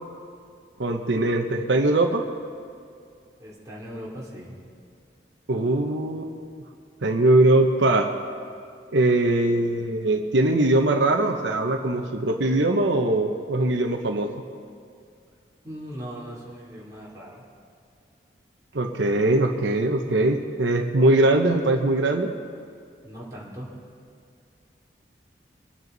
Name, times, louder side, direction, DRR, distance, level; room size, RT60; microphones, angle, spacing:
voice 1, 0.8-2.2 5.5-6.6 7.0-8.1 8.9-14.3 18.7-22.3, right 2 dB, 90° right, 4 dB, 0.9 m, -21 dB
voice 2, 3.4-4.6 15.6-17.4 23.0-23.7, equal, 20° right, -6 dB, 3.2 m, -39 dB
24.5 x 9.5 x 4.0 m, 2.4 s
head